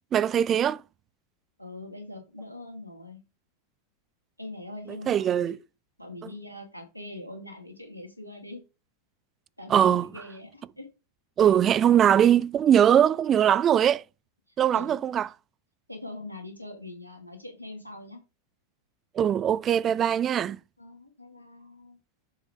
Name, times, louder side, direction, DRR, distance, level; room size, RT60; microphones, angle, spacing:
voice 1, 0.1-0.8 5.1-5.6 9.7-10.1 11.4-14.0 14.6-15.3 19.2-20.6, right 9 dB, 25° right, 0.3 m, -21 dB
voice 2, 1.6-3.2 4.4-5.6 6.0-8.6 9.6-10.9 14.7-15.0 15.9-18.2 20.8-22.0, left 2 dB, 90° right, 2.3 m, -42 dB
7.2 x 4.9 x 3.7 m
figure-of-eight pair, 90°, 0 cm